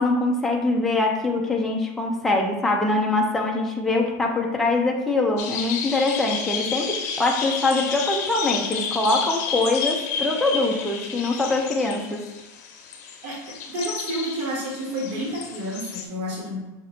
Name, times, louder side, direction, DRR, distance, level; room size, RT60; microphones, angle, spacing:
voice 1, 0.0-12.2, left 2 dB, 5° left, -1 dB, 0.4 m, -23 dB
sound 1, 5.4-16.1, left 6 dB, 55° left, 0.7 m, -31 dB
voice 2, 13.7-16.6, equal, 50° right, -6 dB, 1.5 m, -30 dB
5.8 x 2.9 x 3.1 m, 1.1 s
supercardioid pair, 170°, 10 cm